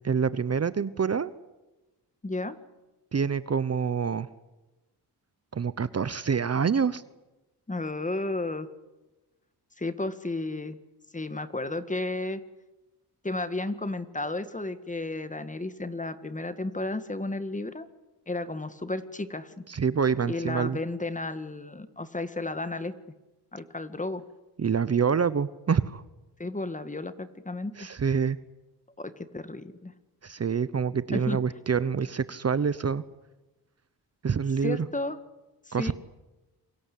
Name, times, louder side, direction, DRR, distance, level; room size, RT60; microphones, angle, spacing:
voice 1, 0.0-1.3 3.1-4.3 5.5-7.0 19.7-20.8 24.6-26.0 27.8-28.4 30.2-33.0 34.2-34.8 35.7-35.9, right 6 dB, 40° right, 16 dB, 0.9 m, -26 dB
voice 2, 2.2-2.6 7.7-8.7 9.8-10.8 11.1-12.4 13.2-17.9 18.3-19.6 20.3-22.9 23.5-24.2 26.4-27.7 29.0-29.9 31.1-31.4 34.5-35.2 35.7-35.9, left 2 dB, 20° left, 12 dB, 1.8 m, -33 dB
27.5 x 24.0 x 8.5 m, 1.1 s
cardioid pair, 100°, 40 cm